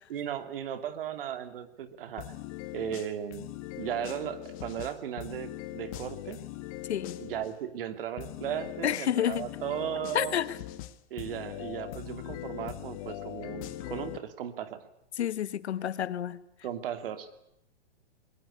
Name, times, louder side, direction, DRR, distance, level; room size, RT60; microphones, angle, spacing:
voice 1, 0.1-2.4 2.7-3.5 3.8-6.4 7.2-10.4 11.1-14.8 16.6-17.4, right 10 dB, 55° right, 2.6 m, -36 dB
sound 1, 2.2-7.5 8.2-14.2, left 14 dB, 30° left, 1.1 m, -41 dB
voice 2, 6.9-7.2 8.8-9.5 10.1-10.5 15.2-16.4, left 10 dB, 75° left, 1.4 m, -29 dB
21.5 x 19.5 x 9.8 m
hypercardioid pair, 160°, 33 cm